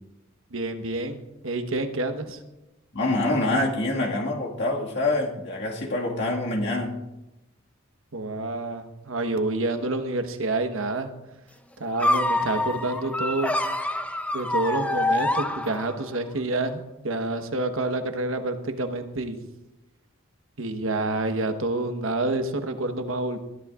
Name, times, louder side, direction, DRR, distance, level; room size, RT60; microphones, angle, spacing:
voice 1, 0.5-2.4 8.1-11.1 11.8-13.6 14.3-19.4 20.6-23.4, right 2 dB, 70° right, 7 dB, 1.2 m, -28 dB
voice 2, 2.9-7.0, left 2 dB, 55° left, -1 dB, 1.9 m, -25 dB
sound 1, 12.0-16.1, left 1 dB, 5° left, 0.5 m, -26 dB
20.5 x 13.5 x 2.5 m, 0.98 s
head